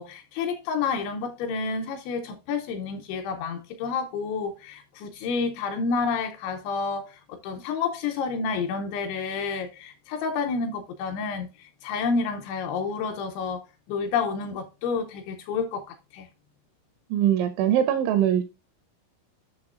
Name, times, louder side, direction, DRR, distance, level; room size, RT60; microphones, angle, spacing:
voice 1, 0.0-16.3, left 5 dB, 80° left, 2.7 m, -29 dB
voice 2, 17.1-18.4, right 10 dB, 85° right, 2.7 m, -22 dB
8.7 x 5.9 x 2.4 m
omnidirectional pair, 5.9 m